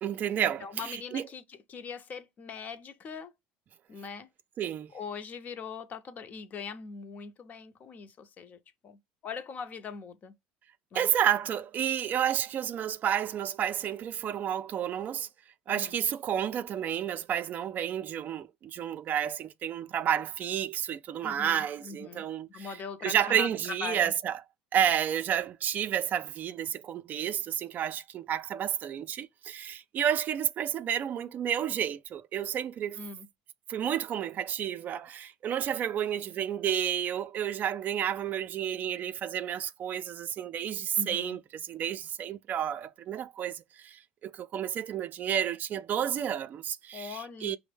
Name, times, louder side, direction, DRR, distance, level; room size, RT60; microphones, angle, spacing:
voice 1, 0.0-1.3 4.6-4.9 10.9-15.3 15.7-22.8 23.0-24.4 24.7-33.0 33.7-47.6, right 9 dB, 40° right, 0.3 m, -31 dB
voice 2, 0.6-3.3 3.9-4.3 4.9-9.0 9.2-10.3 10.9-11.1 15.7-16.0 21.2-22.2 22.5-23.5 23.8-24.1 33.0-33.3 41.0-41.4 46.9-47.6, left 5 dB, 40° left, 0.6 m, -41 dB
5.1 x 2.0 x 3.3 m
supercardioid pair, 100°, 4 cm